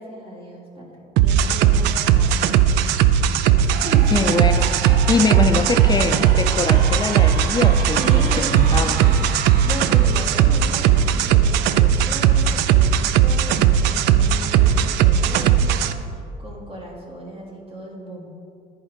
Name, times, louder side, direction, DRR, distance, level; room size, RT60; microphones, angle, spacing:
voice 1, 0.0-2.4 2.9-3.0 3.8-4.1 4.9-5.0 8.0-9.3 9.6-18.3, right 1 dB, 35° right, -3 dB, 1.5 m, -36 dB
sound 1, 1.2-15.9, right 9 dB, 90° right, 0.4 m, -17 dB
sound 2, 3.7-11.6, right 5 dB, 65° right, 0.7 m, -34 dB
voice 2, 4.1-9.0, left 4 dB, 25° left, 6 dB, 0.4 m, -23 dB
10.0 x 4.8 x 5.2 m, 2.5 s
cardioid pair, 110°, 17 cm